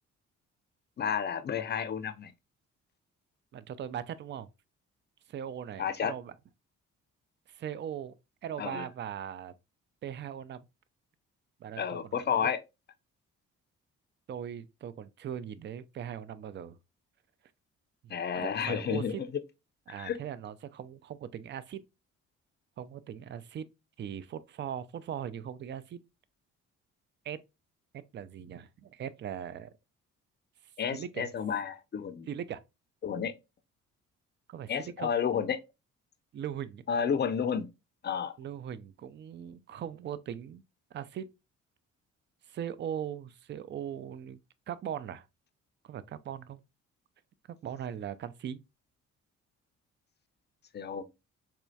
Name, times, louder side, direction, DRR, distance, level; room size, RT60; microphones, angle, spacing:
voice 1, 1.0-2.3 5.8-6.1 8.6-8.8 11.8-12.6 18.1-19.4 20.0-20.2 30.8-32.3 33.0-33.3 34.7-35.6 36.9-37.7 38.0-38.3 50.7-51.0, left 7 dB, 35° left, 0.5 m, -31 dB
voice 2, 3.5-4.5 5.3-6.3 7.5-8.1 8.4-9.5 10.0-10.7 11.6-12.5 14.3-16.8 18.0-19.2 19.9-21.8 22.8-23.7 24.0-26.0 27.2-27.4 27.9-29.7 30.9-31.3 32.3-32.6 34.5-35.1 36.3-36.8 38.4-40.6 40.9-41.3 42.5-44.4 44.7-45.3 45.8-46.6 47.5-48.6, right 9 dB, 35° right, 0.4 m, -39 dB
4.2 x 2.3 x 2.6 m
supercardioid pair, 65°, 31 cm